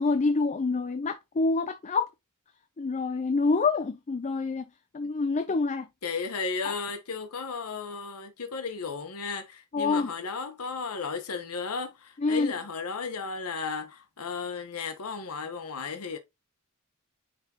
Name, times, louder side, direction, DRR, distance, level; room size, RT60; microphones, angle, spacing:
voice 1, 0.0-2.1 2.8-4.6 4.9-5.9 6.6-6.7 9.7-10.1 12.2-12.5, left 3 dB, 35° left, 0.4 m, -26 dB
voice 2, 6.0-16.2, left 5 dB, 75° left, 1.0 m, -34 dB
9.5 x 3.5 x 2.8 m
head